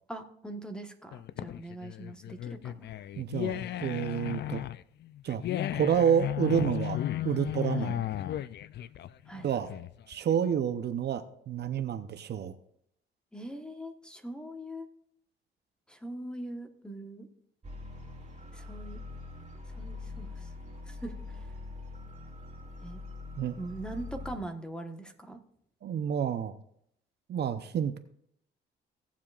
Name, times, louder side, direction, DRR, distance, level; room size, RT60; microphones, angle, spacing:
voice 1, 0.1-2.9 7.8-7.9 9.3-9.5 13.3-14.9 15.9-17.3 18.5-19.0 19.8-20.5 20.9-21.4 22.8-23.0 23.6-25.4, right 1 dB, 5° left, 6 dB, 1.2 m, -42 dB
sound 1, 1.1-10.1, left 12 dB, 60° left, 0.4 m, -35 dB
voice 2, 3.2-4.6 5.2-5.4 5.7-7.0 7.2-8.0 9.4-9.7 10.1-12.6 23.4-23.5 25.8-26.6 27.3-28.0, right 8 dB, 55° right, 9 dB, 0.7 m, -29 dB
sound 2, 17.6-24.4, left 3 dB, 35° right, 2.4 m, -43 dB
17.0 x 7.3 x 2.4 m, 0.70 s
cardioid pair, 90°, 20 cm